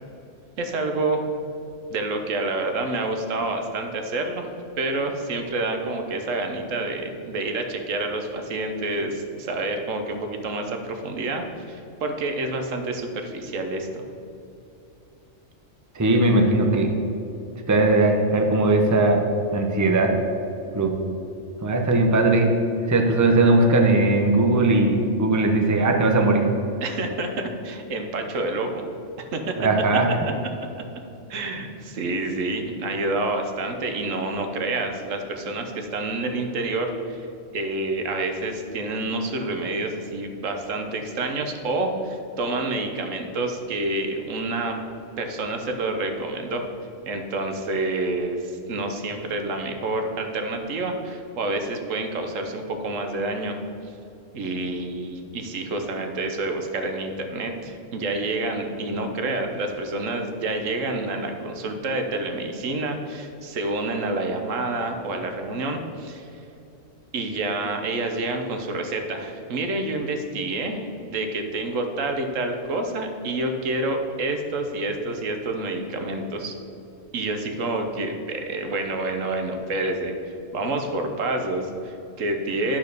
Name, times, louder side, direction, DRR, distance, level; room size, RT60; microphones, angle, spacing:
voice 1, 0.6-1.2 1.9-14.1 20.7-20.8 26.8-28.8 29.2-29.6 31.3-37.3 37.5-44.8 45.2-46.7 47.1-53.6 54.3-66.4 67.1-76.6 77.1-82.8, right 2 dB, 85° right, 5 dB, 1.3 m, -28 dB
voice 2, 15.9-16.9 17.7-19.2 19.5-20.1 20.7-21.0 21.6-22.5 22.9-26.4 29.6-30.1, right 2 dB, 20° right, 3 dB, 0.7 m, -19 dB
11.0 x 4.4 x 6.7 m, 2.7 s
omnidirectional pair, 1.3 m